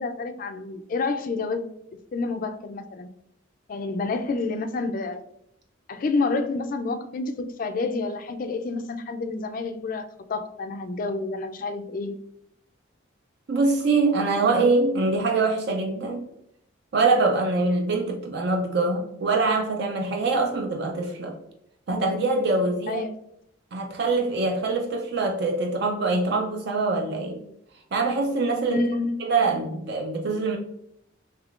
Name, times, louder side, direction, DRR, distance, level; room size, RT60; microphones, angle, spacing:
voice 1, 0.0-1.7 2.1-3.1 3.7-5.2 5.9-12.2 22.9-23.1 28.7-29.3, left 3 dB, 45° left, 7 dB, 0.3 m, -29 dB
voice 2, 13.5-16.3 16.9-21.4 21.9-23.0 23.7-27.4 27.9-28.8 29.2-30.6, right 3 dB, 55° right, 2 dB, 0.4 m, -24 dB
3.5 x 3.2 x 2.4 m, 0.75 s
head